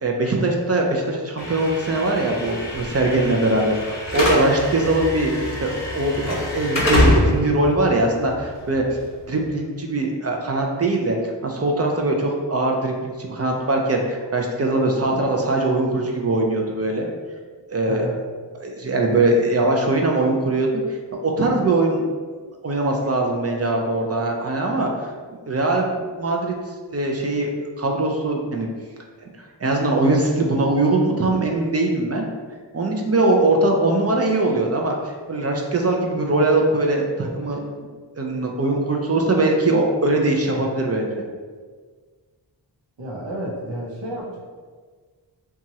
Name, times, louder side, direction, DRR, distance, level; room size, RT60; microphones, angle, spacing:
voice 1, 0.0-8.8 9.3-11.2 11.4-17.1 17.7-18.1 18.6-20.7 21.2-22.0 22.6-24.9 25.3-26.5 26.9-27.5 27.8-28.7 29.4-32.3 32.7-37.6 38.2-41.2, right 2 dB, 35° right, 1 dB, 0.4 m, -21 dB
Slam / Alarm, 1.4-9.5, left 1 dB, 35° left, 0.9 m, -25 dB
voice 2, 3.1-3.4 17.8-18.2 37.4-37.6 43.0-44.4, equal, 85° right, -2 dB, 0.8 m, -31 dB
2.9 x 2.3 x 2.7 m, 1.5 s
wide cardioid pair, 70°, 43 cm